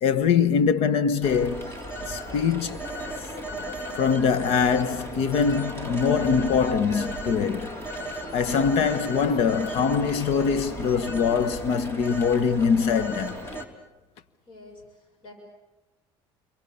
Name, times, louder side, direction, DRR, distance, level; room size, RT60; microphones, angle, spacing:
voice 1, 0.0-1.7 2.1-2.8 3.2-3.3 4.0-7.9 8.3-13.4, left 6 dB, 65° left, 1.4 m, -23 dB
Telephone, 1.2-13.7, equal, 25° left, 3.7 m, -35 dB
voice 2, 14.4-15.3, left 2 dB, 45° left, 7.0 m, -48 dB
29.5 x 23.5 x 7.1 m
cardioid pair, 115°, 11 cm